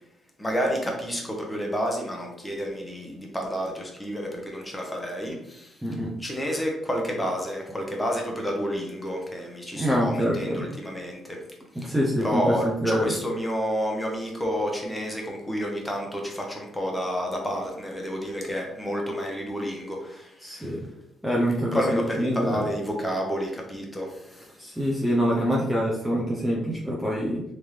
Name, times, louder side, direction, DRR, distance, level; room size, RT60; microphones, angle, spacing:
voice 1, 0.4-5.4 6.2-11.2 12.2-20.0 21.7-24.1, equal, 10° left, 0 dB, 1.0 m, -29 dB
voice 2, 5.8-6.1 9.8-10.7 11.7-13.2 20.4-20.8 21.2-22.7 24.6-27.4, equal, 5° right, -4 dB, 0.7 m, -25 dB
3.6 x 2.6 x 3.2 m, 0.81 s
cardioid pair, 90°, 0 cm